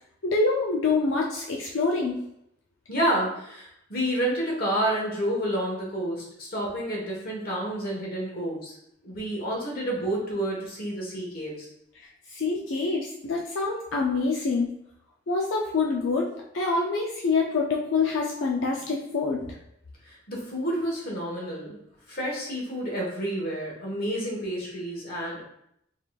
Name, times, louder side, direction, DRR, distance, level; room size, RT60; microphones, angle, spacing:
voice 1, 0.2-2.2 12.0-14.7 15.3-16.3 16.5-19.5, left 3 dB, 85° left, -2 dB, 0.5 m, -26 dB
voice 2, 2.9-8.8 9.0-11.7 20.0-21.8 22.1-25.4, right 1 dB, 50° left, -2 dB, 1.3 m, -29 dB
3.9 x 3.8 x 2.4 m, 0.75 s
head